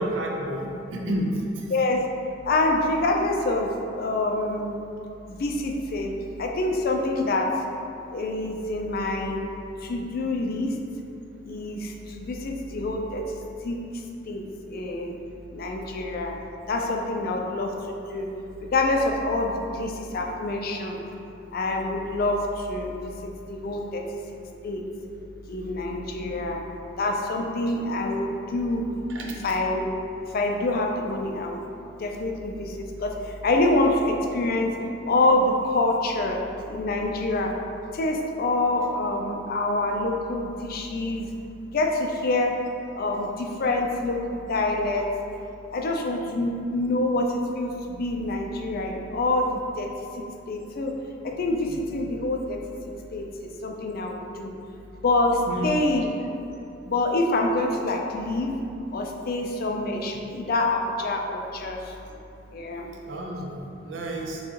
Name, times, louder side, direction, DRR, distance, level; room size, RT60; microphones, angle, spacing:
voice 1, 0.0-1.6 29.1-29.2 55.5-55.7 63.1-64.4, right 1 dB, 70° right, -1 dB, 0.6 m, -30 dB
voice 2, 1.7-2.0 2.4-4.8 5.3-7.5 8.1-9.4 9.8-10.8 11.4-13.2 13.6-15.1 15.5-16.3 16.7-18.3 18.6-21.0 21.5-24.0 24.6-24.8 25.5-26.6 27.0-28.9 29.2-29.9 30.3-31.6 32.0-34.7 35.0-36.4 36.7-37.5 37.9-41.3 41.7-42.6 42.9-45.1 45.7-50.9 51.2-52.6 53.1-54.5 55.0-56.3 56.8-58.6 58.9-61.9 62.5-62.9, left 2 dB, 50° left, 2 dB, 0.4 m, -26 dB
6.1 x 2.3 x 2.9 m, 2.7 s
head